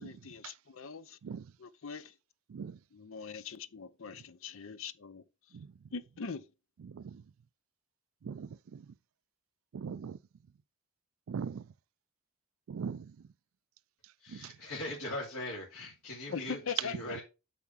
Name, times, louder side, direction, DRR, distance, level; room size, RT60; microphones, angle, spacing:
voice 1, 0.0-1.2 1.6-2.2 2.9-5.3 5.9-6.5 16.3-17.2, left 5 dB, 65° left, 0.6 m, -42 dB
voice 2, 6.8-7.2 8.2-8.9 9.7-10.2 11.3-11.6 12.7-13.1 14.3-14.5, right 6 dB, 65° right, 0.4 m, -40 dB
voice 3, 14.2-17.2, left 1 dB, 90° left, 2.4 m, -40 dB
8.3 x 3.5 x 5.6 m
head